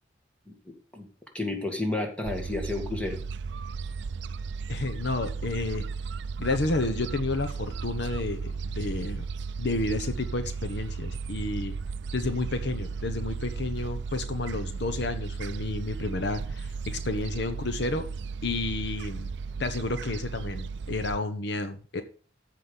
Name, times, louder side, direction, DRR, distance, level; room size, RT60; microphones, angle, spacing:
voice 1, 1.3-3.2, left 2 dB, 5° left, 3 dB, 2.0 m, -31 dB
Gull seagull, 2.2-21.2, right 5 dB, 65° right, 0.4 m, -35 dB
voice 2, 4.7-5.9 6.4-9.3 9.6-11.8 12.1-18.1 18.4-19.3 19.6-22.0, left 2 dB, 65° left, 8 dB, 1.0 m, -31 dB
14.0 x 5.1 x 5.5 m, 0.40 s
head